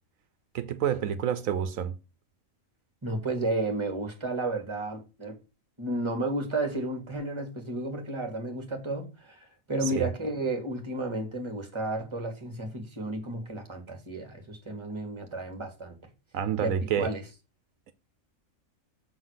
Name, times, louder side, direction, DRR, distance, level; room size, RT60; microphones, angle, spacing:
voice 1, 0.5-2.0 9.8-10.1 16.3-17.1, right 8 dB, 80° right, 1.1 m, -28 dB
voice 2, 3.0-5.4 5.8-16.0 16.6-17.2, right 2 dB, 20° right, 1.8 m, -32 dB
6.5 x 4.0 x 6.3 m
omnidirectional pair, 1.4 m